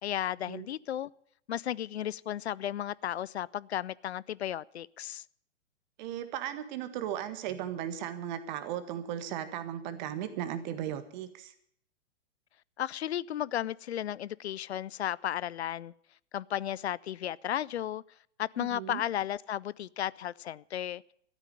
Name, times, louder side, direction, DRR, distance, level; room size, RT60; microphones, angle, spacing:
voice 1, 0.0-1.1 1.5-5.2 12.8-15.9 16.3-18.0 18.4-21.0, left 11 dB, 60° left, 0.5 m, -34 dB
voice 2, 6.0-11.5 18.6-19.0, right 10 dB, 40° right, 1.6 m, -36 dB
13.5 x 9.0 x 9.8 m
figure-of-eight pair, 115°, 36 cm